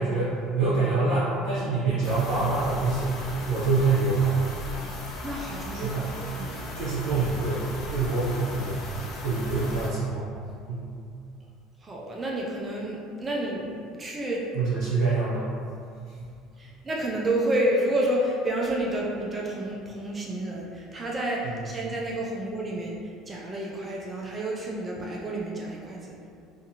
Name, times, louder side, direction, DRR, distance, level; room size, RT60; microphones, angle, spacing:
voice 1, 0.0-4.4 5.8-6.1 6.7-10.3 10.7-10.9 14.5-15.5, right 3 dB, 70° right, -10 dB, 0.7 m, -26 dB
sound 1, 2.0-9.9, left 1 dB, 40° left, 0.4 m, -37 dB
voice 2, 5.2-6.6 11.8-14.5 16.6-23.0 23.3-26.2, right 1 dB, 20° right, -3 dB, 0.4 m, -30 dB
2.5 x 2.5 x 2.7 m, 2.4 s
cardioid pair, 135°, 0 cm